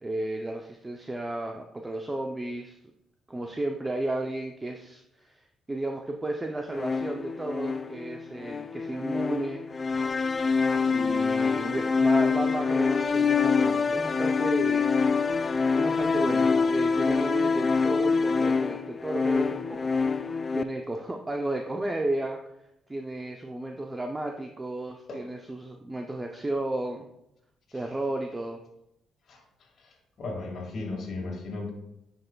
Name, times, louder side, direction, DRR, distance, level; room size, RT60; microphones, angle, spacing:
voice 1, 0.0-2.8 3.3-5.4 5.7-9.6 10.9-14.9 15.8-19.9 20.5-22.4 22.9-27.1 27.7-28.6, right 2 dB, 20° right, 3 dB, 0.5 m, -33 dB
sound 1, 6.7-20.6, left 5 dB, 35° left, 0.4 m, -25 dB
voice 2, 29.8-31.7, left 3 dB, 60° left, -2 dB, 1.9 m, -36 dB
9.5 x 5.5 x 2.3 m, 0.82 s
cardioid pair, 90°, 0 cm